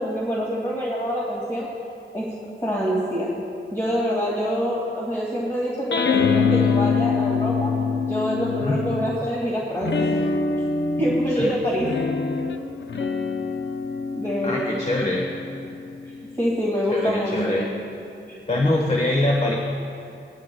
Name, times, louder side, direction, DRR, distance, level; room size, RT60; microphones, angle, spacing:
voice 1, 0.0-1.7 2.1-2.4 2.6-3.4 3.7-7.8 8.1-10.2 11.0-11.9 14.1-14.8 16.0-17.5 18.3-18.4, equal, 15° left, -6 dB, 2.1 m, -26 dB
sound 1, 5.9-9.3 9.8-16.6, left 5 dB, 70° left, 0.7 m, -25 dB
voice 2, 14.4-15.2 16.9-17.7 18.5-19.6, left 1 dB, 35° left, -1 dB, 1.2 m, -23 dB
18.0 x 13.0 x 2.3 m, 2.6 s
wide cardioid pair, 80°, 20 cm